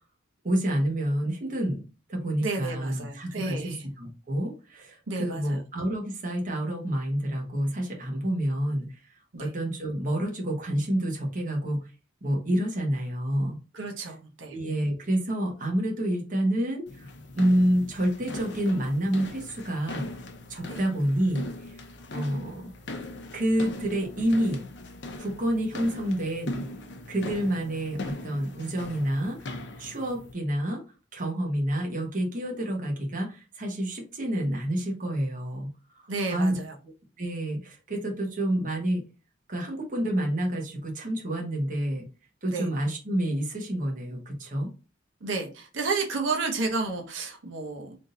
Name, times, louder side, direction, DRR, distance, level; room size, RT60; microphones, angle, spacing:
voice 1, 0.4-1.8 2.1-9.0 9.4-11.9 12.2-13.6 14.0-14.1 14.5-17.1 17.3-20.1 20.5-21.8 22.1-22.6 23.3-24.6 25.2-26.7 27.1-29.4 29.8-30.8 31.1-35.7 36.0-36.6 37.2-39.0 39.5-42.0 42.4-44.7, right 1 dB, 40° right, 0 dB, 1.1 m, -28 dB
voice 2, 2.4-3.8 5.1-5.6 9.3-9.5 13.7-14.6 20.7-20.8 22.2-22.3 36.1-36.7 42.5-42.7 45.2-48.0, right 3 dB, 75° right, 2 dB, 0.8 m, -31 dB
sound 1, 16.9-30.3, left 2 dB, 60° left, 0.7 m, -40 dB
3.6 x 2.7 x 3.8 m, 0.33 s
head